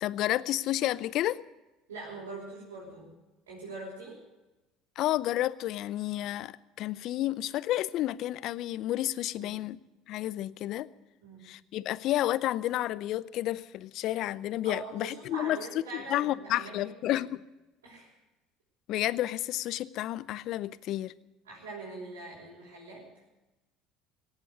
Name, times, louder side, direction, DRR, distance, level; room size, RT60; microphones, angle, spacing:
voice 1, 0.0-1.4 5.0-9.8 10.1-10.9 11.5-15.6 15.9-17.4 18.9-21.1, left 14 dB, 60° left, 19 dB, 0.6 m, -31 dB
voice 2, 1.9-3.1 3.5-4.2 9.4-9.6 11.2-11.5 14.6-17.1 17.8-18.1 21.5-23.1, right 2 dB, 90° right, -7 dB, 5.5 m, -43 dB
18.0 x 8.2 x 9.7 m, 1.1 s
hypercardioid pair, 75°, 0 cm